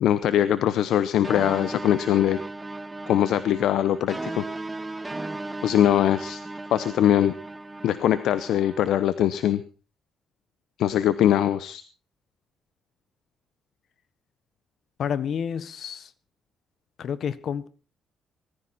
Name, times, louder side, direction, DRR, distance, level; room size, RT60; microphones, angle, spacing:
voice 1, 0.0-2.4 3.1-4.4 5.6-6.4 6.7-7.3 7.8-9.6 10.8-11.8, left 11 dB, 80° left, 14 dB, 0.9 m, -22 dB
sound 1, 1.2-8.9, right 2 dB, 15° right, 1.3 m, -36 dB
voice 2, 15.0-16.1 17.0-17.7, left 7 dB, 60° left, 16 dB, 1.2 m, -29 dB
19.5 x 14.5 x 4.3 m, 0.35 s
cardioid pair, 90°, 0 cm